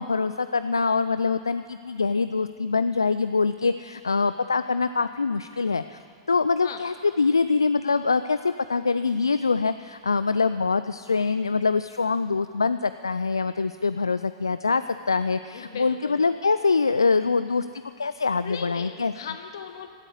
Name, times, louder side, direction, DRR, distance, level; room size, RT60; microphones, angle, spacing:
voice 1, 0.0-6.0 6.3-14.8 15.1-17.7 18.0-19.1, left 4 dB, 80° left, 13 dB, 0.4 m, -24 dB
voice 2, 15.5-16.2 18.4-19.9, left 7 dB, 65° left, 7 dB, 1.4 m, -37 dB
16.5 x 9.2 x 8.3 m, 2.2 s
figure-of-eight pair, 95°, 2 cm